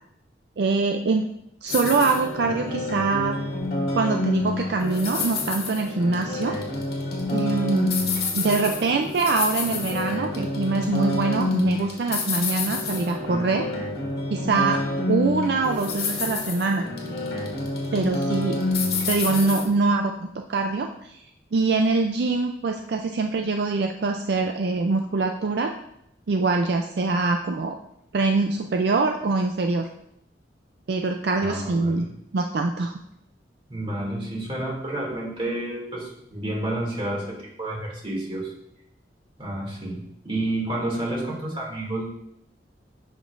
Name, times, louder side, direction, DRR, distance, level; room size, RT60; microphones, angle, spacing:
voice 1, 0.6-1.3 1.6-3.4 3.9-6.6 7.3-7.9 8.3-13.7 14.3-14.8 15.1-16.9 17.9-18.6 19.1-21.2 21.5-25.7 26.3-27.8 28.1-29.9 30.9-32.0 32.3-32.9, right 3 dB, 65° right, 4 dB, 0.4 m, -24 dB
sound 1, 1.7-19.7, left 3 dB, 60° left, 1.5 m, -28 dB
voice 2, 31.4-32.1 33.7-38.5 39.4-42.1, right 1 dB, 30° right, -3 dB, 2.4 m, -30 dB
11.0 x 5.2 x 2.5 m, 0.77 s
head